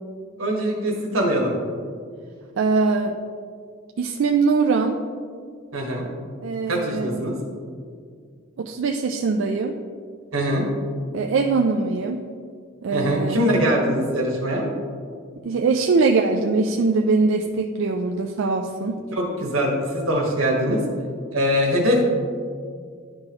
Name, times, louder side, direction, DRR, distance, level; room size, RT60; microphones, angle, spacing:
voice 1, 0.4-1.5 5.7-6.0 6.7-7.3 10.3-10.7 12.9-14.7 19.1-20.8 21.3-22.0, equal, 90° right, -1 dB, 1.4 m, -22 dB
voice 2, 2.6-3.1 4.0-5.0 6.4-7.3 8.6-9.7 11.1-12.2 12.8-13.5 15.4-19.0 20.7-20.8, right 4 dB, 70° right, 2 dB, 0.4 m, -22 dB
11.0 x 3.8 x 2.9 m, 2.1 s
head